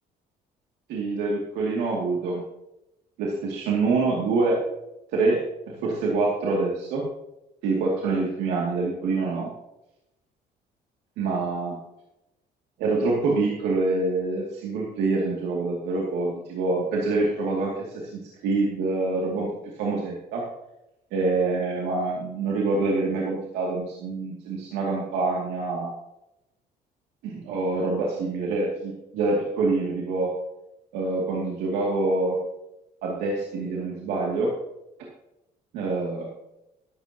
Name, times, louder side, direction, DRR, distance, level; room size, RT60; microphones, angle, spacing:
voice 1, 0.9-2.4 3.2-4.6 5.1-5.4 5.7-7.0 7.6-9.5 11.2-11.8 12.8-19.5 19.8-20.5 21.1-25.9 27.2-30.3 30.9-32.4 33.0-34.5 35.7-36.3, right 3 dB, 90° right, -3 dB, 2.5 m, -26 dB
13.0 x 12.0 x 2.9 m, 0.90 s
cardioid pair, 110°, 17 cm